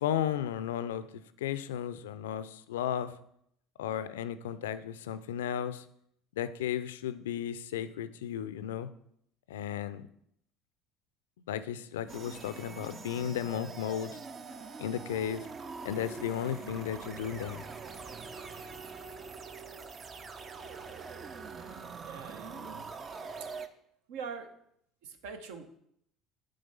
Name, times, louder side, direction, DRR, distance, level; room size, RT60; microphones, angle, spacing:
voice 1, 0.0-3.1 3.8-5.8 6.4-8.9 9.5-10.1 11.5-14.2 14.8-15.5 15.8-17.6, left 10 dB, 75° left, 13 dB, 0.3 m, -34 dB
sound 1, 12.1-23.7, right 4 dB, 35° right, 0.5 m, -44 dB
voice 2, 22.1-22.9 24.1-24.5 25.0-25.8, right 6 dB, 70° right, 8 dB, 0.8 m, -43 dB
7.7 x 3.3 x 5.5 m, 0.72 s
hypercardioid pair, 65°, 0 cm